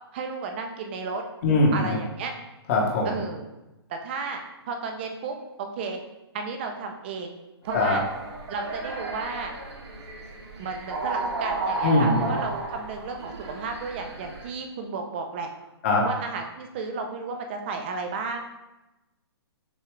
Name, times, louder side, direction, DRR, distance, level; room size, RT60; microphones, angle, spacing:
voice 1, 0.1-1.2 1.7-2.3 3.0-3.5 3.9-6.0 6.3-7.4 7.6-8.0 8.5-9.5 10.6-15.5 16.1-18.4, right 4 dB, 25° right, 4 dB, 0.5 m, -33 dB
voice 2, 1.4-2.0 2.7-3.1 7.7-8.0 11.8-12.3 15.8-16.1, left 2 dB, 30° left, -2 dB, 1.0 m, -21 dB
sound 1, 7.6-14.5, right 3 dB, 80° right, 1.3 m, -33 dB
6.7 x 2.3 x 3.2 m, 0.98 s
hypercardioid pair, 165°, 14 cm